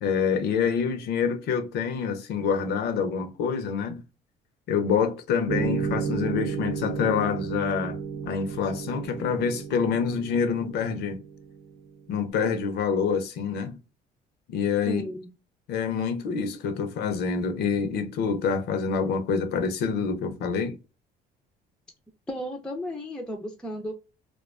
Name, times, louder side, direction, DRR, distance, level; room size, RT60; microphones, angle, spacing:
voice 1, 0.0-4.0 4.7-8.0 8.2-11.2 12.1-13.8 14.5-15.0 15.7-20.8, left 6 dB, 75° left, 0.6 m, -26 dB
sound 1, 5.5-12.0, right 6 dB, 65° right, 0.6 m, -33 dB
voice 2, 14.9-15.3 22.3-23.9, equal, 5° left, 0.4 m, -34 dB
2.4 x 2.2 x 2.3 m
cardioid pair, 110°, 17 cm